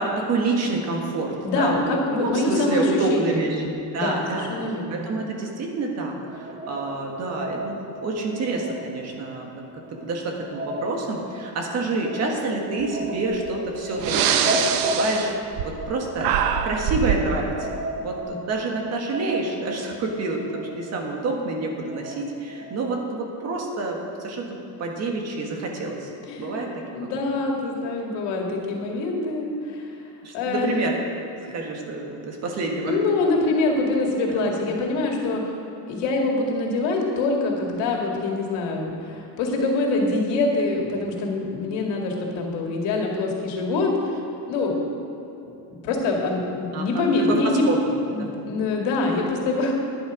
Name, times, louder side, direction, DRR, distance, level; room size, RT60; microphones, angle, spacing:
voice 1, 0.0-3.6 3.9-9.5 10.0-14.6 15.0-16.3 16.6-24.5 24.8-26.1 26.4-27.1 30.2-31.0 31.5-33.0 34.3-34.7 46.7-47.9 48.2-48.3, right 3 dB, 35° right, 0 dB, 1.6 m, -28 dB
voice 2, 1.4-5.0 26.3-26.6 26.9-29.9 30.3-30.7 31.4-31.5 32.9-35.5 35.9-44.2 44.5-44.8 45.5-45.6 45.8-47.6 48.1-49.7, left 2 dB, 75° left, 0 dB, 2.2 m, -25 dB
sound 1, 6.3-23.0, equal, 15° right, 0.4 m, -34 dB
Breathing, 13.3-13.5 14.0-15.9 16.2-17.3, right 9 dB, 55° right, 0.7 m, -23 dB
11.5 x 11.0 x 5.1 m, 2.8 s
cardioid pair, 180°, 43 cm